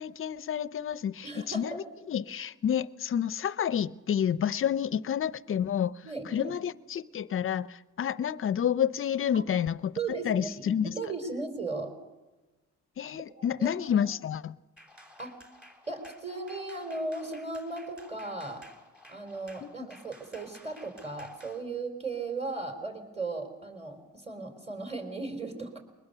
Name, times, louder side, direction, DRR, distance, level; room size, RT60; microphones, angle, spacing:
voice 1, 0.0-5.9 6.3-10.9 13.0-14.5 19.6-19.9, left 9 dB, 45° left, 18 dB, 0.6 m, -29 dB
voice 2, 1.2-1.8 6.0-6.5 9.3-9.4 10.0-11.9 13.4-14.1 15.2-15.4 15.9-18.6 19.1-25.8, right 3 dB, 20° right, 5 dB, 4.4 m, -37 dB
sound 1, 14.8-21.6, equal, 5° right, 3.2 m, -54 dB
22.0 x 20.5 x 6.8 m, 1.2 s
cardioid pair, 90°, 30 cm